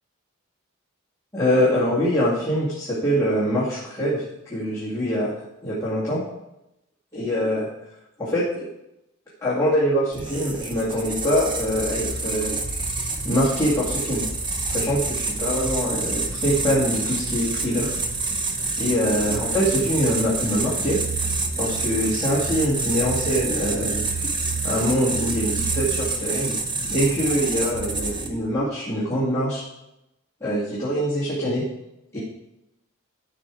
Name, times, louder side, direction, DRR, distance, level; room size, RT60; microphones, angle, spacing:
voice 1, 1.3-5.3 5.6-6.2 7.1-7.7 8.2-8.7 9.4-12.6 13.2-14.3 14.7-17.9 18.8-21.0 21.6-24.4 24.6-26.6 26.9-29.6 30.4-31.6 32.1-32.2, equal, 15° left, -9 dB, 2.1 m, -24 dB
sound 1, 10.1-28.5, right 3 dB, 25° right, 0.9 m, -27 dB
13.0 x 5.6 x 4.7 m, 0.90 s
head